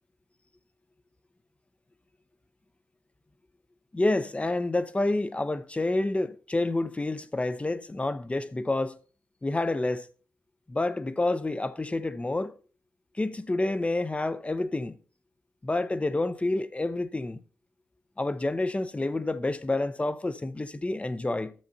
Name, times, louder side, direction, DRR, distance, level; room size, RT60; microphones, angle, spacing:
voice 1, 3.9-9.0 9.4-10.1 10.7-12.5 13.2-15.0 15.6-17.4 18.2-21.5, left 2 dB, 20° left, 0.6 m, -28 dB
13.0 x 6.8 x 2.7 m
cardioid pair, 70°, 6 cm